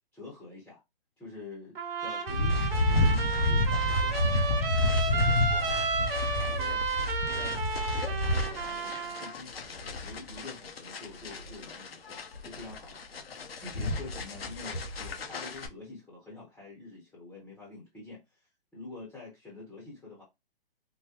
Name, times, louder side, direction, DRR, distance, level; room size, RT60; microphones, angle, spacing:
voice 1, 0.1-0.8 1.2-6.8 7.2-7.6 7.9-13.0 13.6-20.2, left 3 dB, 5° left, 0.8 m, -47 dB
Trumpet, 1.7-9.3, right 4 dB, 75° right, 1.0 m, -32 dB
sound 1, 2.3-15.7, left 1 dB, 85° left, 1.0 m, -30 dB
3.8 x 2.2 x 2.8 m
hypercardioid pair, 145°, 29 cm